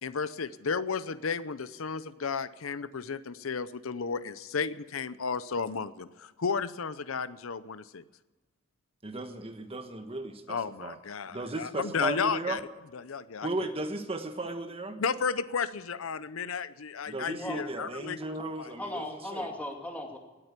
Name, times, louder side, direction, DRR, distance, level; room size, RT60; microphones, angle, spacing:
voice 1, 0.0-8.0 10.5-12.6 12.9-13.5 15.0-18.2 18.6-18.7, left 5 dB, 85° left, 15 dB, 0.7 m, -33 dB
voice 2, 9.0-11.0 11.3-12.6 13.4-15.0 17.1-19.5, right 2 dB, 30° right, 7 dB, 1.2 m, -36 dB
voice 3, 18.8-20.2, left 1 dB, 10° left, 1 dB, 2.5 m, -37 dB
18.5 x 8.9 x 8.2 m, 1.2 s
head